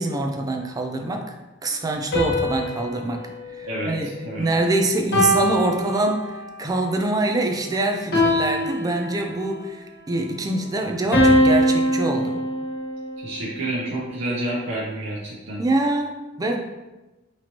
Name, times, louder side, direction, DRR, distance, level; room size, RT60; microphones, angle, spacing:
voice 1, 0.0-1.3 1.6-3.3 3.5-4.1 4.4-12.4 15.6-16.6, right 2 dB, 20° right, 3 dB, 0.4 m, -24 dB
sound 1, 2.1-4.5 5.1-6.6 8.1-9.6 11.1-13.4, equal, 60° left, 1.1 m, -23 dB
voice 2, 3.7-4.5 13.2-15.6, right 1 dB, 85° right, -7 dB, 0.7 m, -29 dB
4.1 x 3.0 x 2.9 m, 1.1 s
head